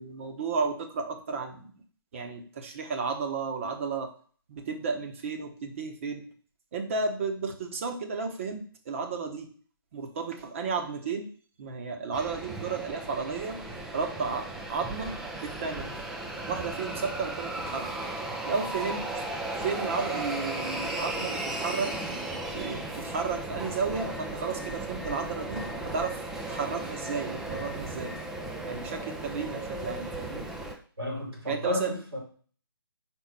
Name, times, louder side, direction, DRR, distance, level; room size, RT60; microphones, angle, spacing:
voice 1, 0.0-1.7 2.1-4.1 4.5-6.2 6.7-9.5 9.9-11.3 11.6-13.6 13.9-15.9 16.5-18.0 18.5-19.2 19.6-21.9 22.5-26.2 26.5-28.1 28.6-30.5 31.5-31.9, right 5 dB, 35° right, 4 dB, 1.1 m, -33 dB
sound 1, 12.1-30.7, right 2 dB, 5° right, 0.4 m, -36 dB
voice 2, 31.0-32.2, left 1 dB, 80° right, -1 dB, 3.1 m, -32 dB
4.6 x 4.1 x 5.5 m, 0.43 s
figure-of-eight pair, 140°, 13 cm